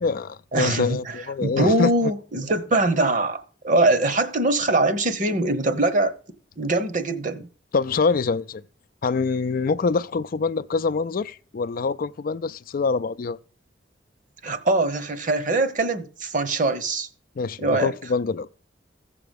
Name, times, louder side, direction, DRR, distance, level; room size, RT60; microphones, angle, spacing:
voice 1, 0.0-2.1 7.7-8.6 9.0-13.4 17.4-18.5, left 4 dB, 50° left, 0.4 m, -25 dB
voice 2, 0.5-6.1 6.6-7.5 14.4-17.1 17.6-17.9, right 2 dB, 45° right, 1.1 m, -22 dB
15.5 x 6.9 x 5.3 m
head